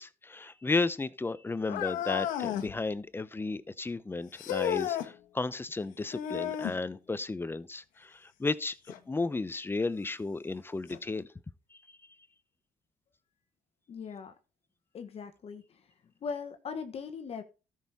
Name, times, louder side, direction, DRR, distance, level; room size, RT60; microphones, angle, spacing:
voice 1, 0.0-8.7 9.1-11.3 11.7-11.8, left 3 dB, 15° left, 0.7 m, -33 dB
sound 1, 1.7-2.7 4.4-5.1 6.1-6.8 8.9-9.0 9.8-9.9 10.9-11.0, left 11 dB, 85° left, 1.3 m, -33 dB
voice 2, 13.9-14.3 14.9-15.8 16.2-17.4, left 5 dB, 45° left, 1.3 m, -39 dB
13.0 x 6.5 x 4.1 m
cardioid pair, 95°, 14 cm